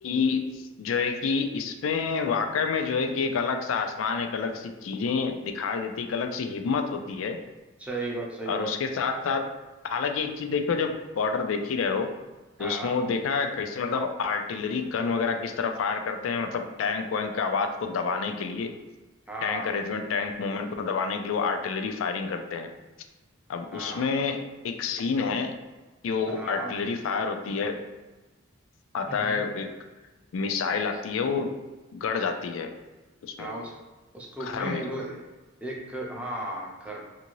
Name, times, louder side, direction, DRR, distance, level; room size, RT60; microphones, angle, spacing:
voice 1, 0.0-7.4 8.5-9.5 9.8-12.1 12.6-18.8 19.4-22.7 23.5-25.6 26.0-27.8 28.9-29.7 30.3-31.5 31.9-32.7 33.2-33.5 34.4-34.9, left 5 dB, 80° left, 6 dB, 0.3 m, -28 dB
voice 2, 7.8-8.7 12.6-12.9 19.3-19.8 23.7-24.1 26.3-26.7 29.1-29.4 33.4-33.7 34.1-35.2 35.6-37.0, right 1 dB, 5° right, -3 dB, 0.5 m, -35 dB
2.6 x 2.6 x 2.9 m, 1.2 s
head